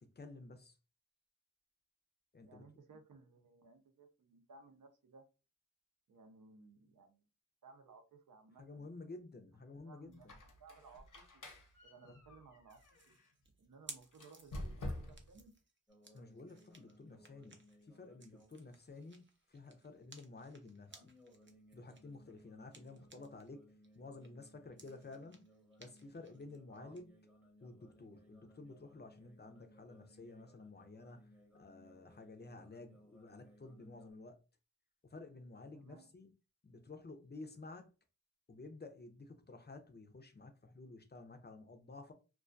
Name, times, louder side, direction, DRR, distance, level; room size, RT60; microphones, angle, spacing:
voice 1, 0.0-0.8 2.3-2.6 8.6-10.4 12.0-12.1 16.1-19.2 19.5-21.1 21.7-25.4 25.8-27.1 27.6-34.4 35.1-36.3 36.6-37.9 38.5-42.1, left 3 dB, 35° left, 0.4 m, -52 dB
voice 2, 2.4-5.2 6.1-7.2 7.6-8.9 9.7-10.3 10.6-11.5 11.8-12.8 13.1-13.2 13.6-15.5 26.7-26.9 35.7-36.1, right 4 dB, 80° right, 0.6 m, -60 dB
Squeak, 10.1-13.3 14.1-15.4, left 1 dB, 80° left, 0.8 m, -48 dB
sound 1, 12.7-23.5 23.8-27.0, right 3 dB, 40° right, 0.5 m, -59 dB
sound 2, 15.9-19.4 20.9-34.1, equal, 5° right, 0.8 m, -65 dB
2.3 x 2.2 x 2.5 m
wide cardioid pair, 70°, 31 cm